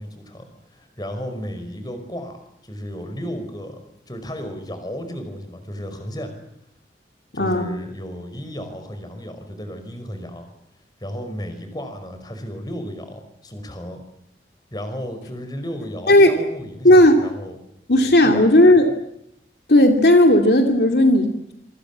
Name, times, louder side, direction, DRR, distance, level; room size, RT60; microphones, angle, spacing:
voice 1, 0.0-6.3 7.3-10.5 11.0-14.0 14.7-16.9 17.2-17.6 18.2-18.7, equal, 25° left, 7 dB, 5.4 m, -34 dB
voice 2, 7.3-7.7 16.1-16.4 16.8-17.2 17.9-18.9 19.7-21.5, left 1 dB, 70° left, 5 dB, 2.5 m, -14 dB
27.0 x 24.5 x 7.4 m, 0.76 s
head